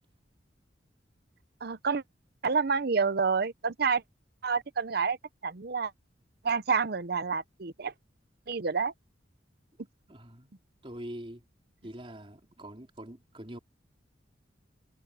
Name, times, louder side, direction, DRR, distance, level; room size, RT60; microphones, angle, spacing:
voice 1, 1.6-2.0 2.4-4.0 4.4-5.2 5.4-5.9 6.4-7.9 8.5-8.9, right 5 dB, 55° right, 0.7 m, -28 dB
voice 2, 10.1-10.5 10.8-11.4 11.8-13.6, right 1 dB, 30° right, 3.2 m, -44 dB
head